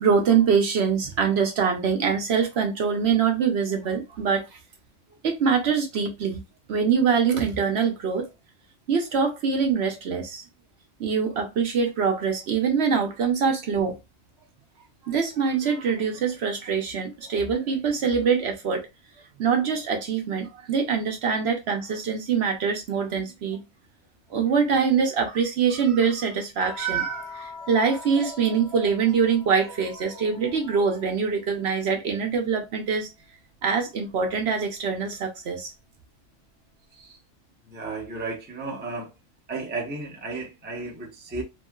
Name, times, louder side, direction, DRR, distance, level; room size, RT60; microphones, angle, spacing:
voice 1, 0.0-4.6 5.2-6.4 6.7-8.3 8.9-10.4 11.0-14.0 15.0-18.9 19.4-23.6 24.3-33.1 33.6-35.7, right 6 dB, 60° right, 0.8 m, -24 dB
sound 1, 26.6-31.1 31.4-33.1 34.6-34.8, left 5 dB, 65° left, 1.1 m, -45 dB
voice 2, 37.7-39.1 39.5-41.4, right 3 dB, 15° right, 0.4 m, -34 dB
3.0 x 2.7 x 2.2 m
omnidirectional pair, 1.3 m